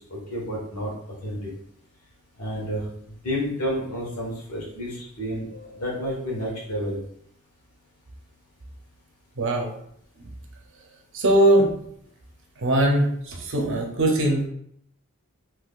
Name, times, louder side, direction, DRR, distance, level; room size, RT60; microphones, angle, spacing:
voice 1, 0.1-0.9 1.2-1.5 2.4-2.8 3.2-7.0, equal, 90° left, -3 dB, 1.4 m, -30 dB
voice 2, 9.4-9.7 10.2-10.3 11.1-11.7 12.6-14.5, right 1 dB, 60° right, 1 dB, 0.7 m, -21 dB
3.6 x 2.9 x 2.4 m, 0.69 s
head